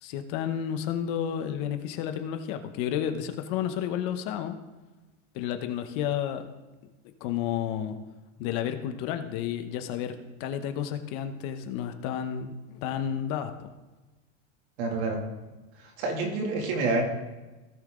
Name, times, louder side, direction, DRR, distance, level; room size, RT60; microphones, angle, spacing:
voice 1, 0.0-4.6 5.3-6.5 7.0-8.0 8.4-13.5, left 9 dB, 50° left, 8 dB, 1.0 m, -31 dB
voice 2, 14.8-15.2 15.8-17.0, right 3 dB, 85° right, 1 dB, 2.7 m, -28 dB
16.5 x 5.7 x 3.8 m, 1.1 s
supercardioid pair, 165°, 32 cm